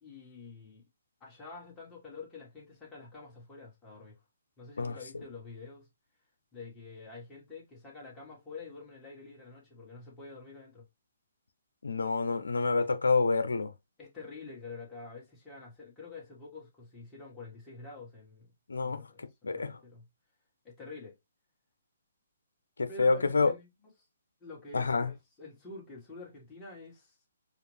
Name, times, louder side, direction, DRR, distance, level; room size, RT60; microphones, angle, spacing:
voice 1, 0.0-0.8 1.2-4.2 4.6-5.9 6.5-10.9 12.8-12.9 14.0-18.5 18.8-20.1 20.6-21.2 22.9-23.7 24.4-27.1, left 3 dB, 15° left, 1.8 m, -47 dB
voice 2, 11.8-13.7 18.7-19.0 19.4-19.7 22.8-23.5 24.7-25.1, left 4 dB, 85° left, 0.6 m, -27 dB
4.8 x 2.5 x 3.3 m
hypercardioid pair, 150°, 0 cm